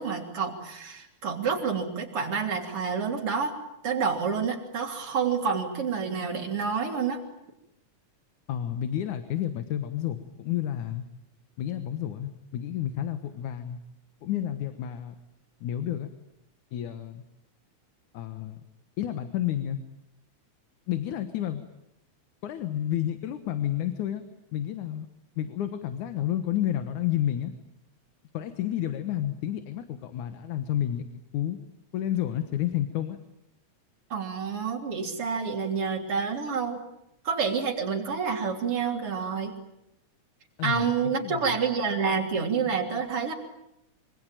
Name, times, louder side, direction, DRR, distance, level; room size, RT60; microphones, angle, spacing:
voice 1, 0.0-3.5 3.8-7.2 34.1-36.8 37.2-39.5 40.6-43.3, right 6 dB, 50° right, 2 dB, 4.1 m, -28 dB
voice 2, 8.5-11.0 11.6-13.8 14.2-15.2 15.6-16.1 16.7-17.2 18.1-18.6 19.0-19.8 20.9-21.7 22.4-24.2 24.5-25.1 25.4-27.5 28.3-31.1 31.3-31.6 31.9-33.2 40.6-41.6, left 11 dB, 85° left, 9 dB, 2.8 m, -30 dB
25.5 x 25.0 x 9.0 m, 0.84 s
omnidirectional pair, 3.4 m